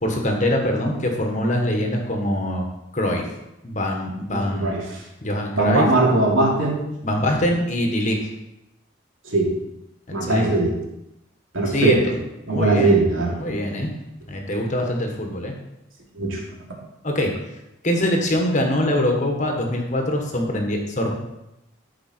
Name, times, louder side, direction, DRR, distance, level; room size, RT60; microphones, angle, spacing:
voice 1, 0.0-2.6 2.9-3.3 3.6-4.9 5.2-5.9 7.0-8.3 10.1-10.5 11.7-12.0 12.4-13.0 13.4-13.9 14.3-15.5 17.0-17.3 17.8-21.2, left 1 dB, 35° left, 2 dB, 1.5 m, -23 dB
voice 2, 4.3-5.0 5.5-6.8 9.2-9.5 10.1-10.7 11.5-11.9 12.5-13.4 16.1-16.7, right 2 dB, 85° right, -3 dB, 2.8 m, -20 dB
13.5 x 5.1 x 4.5 m, 0.90 s
head